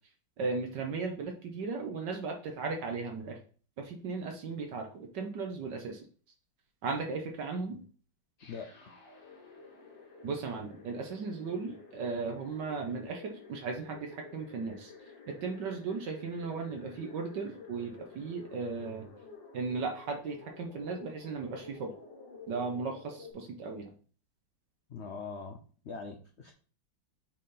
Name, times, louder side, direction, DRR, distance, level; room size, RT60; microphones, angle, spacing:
voice 1, 0.4-3.4 3.8-6.0 6.8-7.8 10.2-14.9 15.3-19.1 19.5-21.9 22.5-23.9, right 4 dB, 70° right, 2 dB, 1.4 m, -36 dB
sound 1, 8.4-23.3, left 4 dB, 70° left, 2.6 m, -51 dB
voice 2, 24.9-25.6 25.8-26.5, left 5 dB, 85° left, 3 dB, 0.6 m, -42 dB
6.5 x 4.1 x 3.8 m, 0.42 s
omnidirectional pair, 2.1 m